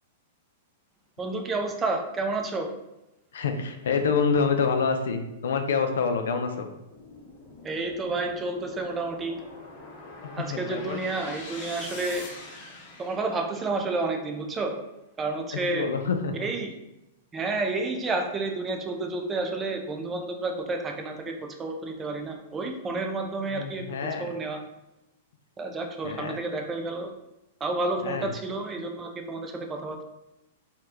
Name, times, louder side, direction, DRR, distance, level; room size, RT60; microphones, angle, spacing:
voice 1, 1.2-2.7 7.6-9.4 10.3-12.3 13.0-14.8 15.2-15.9 16.3-16.7 17.3-23.8 24.2-24.6 25.6-27.1 27.6-30.0, right 3 dB, 20° right, 3 dB, 0.4 m, -30 dB
voice 2, 3.3-6.7 10.4-11.0 15.7-16.4 23.5-24.3 26.0-26.4 28.0-28.3, left 5 dB, 80° left, 6 dB, 0.4 m, -27 dB
sound 1, 6.9-14.2, left 2 dB, 50° left, 0.7 m, -44 dB
2.8 x 2.3 x 3.4 m, 0.92 s
hypercardioid pair, 125°, 0 cm